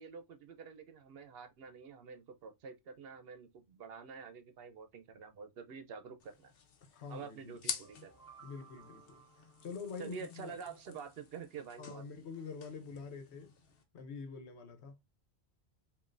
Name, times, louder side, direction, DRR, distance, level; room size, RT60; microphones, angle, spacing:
voice 1, 0.0-6.5 7.1-8.1 10.0-12.0, right 6 dB, 70° right, 0.8 m, -48 dB
sound 1, 6.2-13.8, left 6 dB, 65° left, 1.0 m, -49 dB
voice 2, 6.8-7.6 8.4-10.5 11.8-13.5 13.9-15.0, left 5 dB, 90° left, 1.1 m, -46 dB
sound 2, 7.6-10.6, right 6 dB, 20° left, 2.6 m, -60 dB
5.1 x 2.6 x 2.5 m
omnidirectional pair, 1.1 m